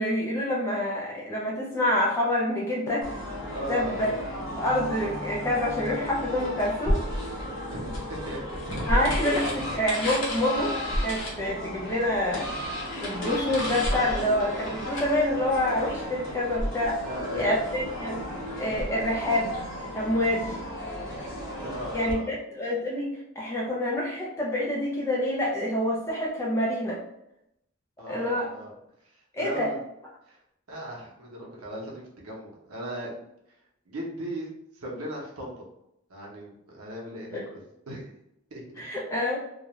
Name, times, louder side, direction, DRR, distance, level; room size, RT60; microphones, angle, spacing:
voice 1, 0.0-3.1 3.7-4.1 4.5-7.0 8.9-9.4 9.7-10.7 11.0-12.5 13.0-17.0 17.3-18.2 18.5-19.6 19.9-20.6 21.6-27.0 28.1-28.5 29.3-29.7 37.3-37.4 38.8-39.4, left 1 dB, 10° left, -5 dB, 0.4 m, -27 dB
sound 1, 3.0-22.1, equal, 60° left, 0.8 m, -35 dB
voice 2, 3.5-4.2 7.7-8.4 8.8-9.6 11.4-11.5 17.0-17.5 21.6-22.3 28.0-28.7 29.0-29.8 30.3-30.4 30.7-33.3 33.9-34.5 34.7-35.7 36.1-37.6 37.9-38.1 38.5-38.6, right 1 dB, 85° right, -2 dB, 0.7 m, -37 dB
sound 2, 6.0-19.4, equal, 50° right, 0.7 m, -33 dB
sound 3, 7.0-9.2 11.4-13.8 14.2-14.5, right 1 dB, 20° right, 0.7 m, -45 dB
2.3 x 2.1 x 2.9 m, 0.82 s
head